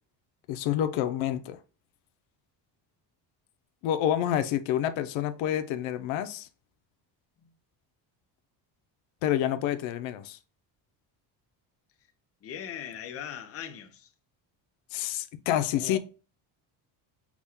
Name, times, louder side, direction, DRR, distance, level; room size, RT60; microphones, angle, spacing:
voice 1, 0.5-1.6 3.8-6.5 9.2-10.4 14.9-16.0, left 11 dB, 85° left, 0.6 m, -28 dB
voice 2, 12.4-14.1 15.7-16.0, left 8 dB, 35° left, 0.6 m, -40 dB
5.9 x 2.2 x 3.5 m
cardioid pair, 140°, 45 cm